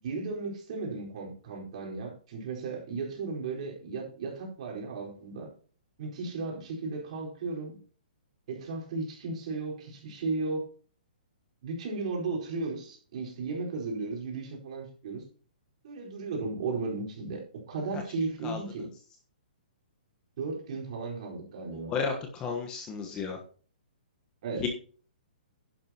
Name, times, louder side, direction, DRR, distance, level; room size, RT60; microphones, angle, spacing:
voice 1, 0.0-5.5 6.0-7.8 8.5-10.6 11.6-15.2 15.8-18.9 20.4-22.0 24.4-24.7, right 3 dB, 45° right, -1 dB, 4.6 m, -35 dB
voice 2, 21.9-23.4 24.6-24.7, left 5 dB, 15° left, 3 dB, 1.3 m, -32 dB
11.0 x 10.5 x 3.0 m, 0.41 s
hypercardioid pair, 165°, 5 cm